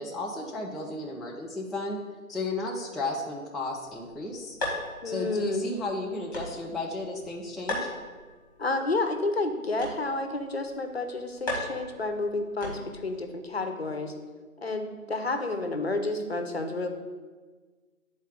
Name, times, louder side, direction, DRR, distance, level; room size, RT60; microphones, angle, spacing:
voice 1, 0.0-2.0 2.3-4.6 5.0-7.9, left 2 dB, ahead, -3 dB, 0.4 m, -34 dB
sound 1, 3.9-13.2, left 1 dB, 15° left, 1.1 m, -39 dB
voice 2, 5.0-5.6 8.6-14.1 14.6-16.9, left 2 dB, 45° left, 6 dB, 0.7 m, -30 dB
10.0 x 4.0 x 3.8 m, 1.4 s
figure-of-eight pair, 165°, 42 cm